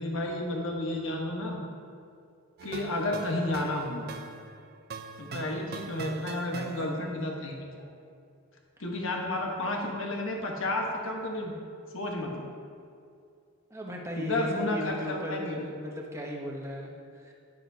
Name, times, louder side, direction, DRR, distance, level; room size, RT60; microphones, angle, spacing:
voice 1, 0.0-1.6 2.6-4.1 5.2-7.8 8.8-11.5 11.9-12.4 14.2-15.6, left 1 dB, 60° left, 0 dB, 1.3 m, -31 dB
sound 1, 2.6-7.3, right 4 dB, 45° right, 0.4 m, -42 dB
voice 2, 13.7-17.3, equal, 15° right, -1 dB, 1.0 m, -37 dB
10.5 x 10.0 x 2.8 m, 2.4 s
head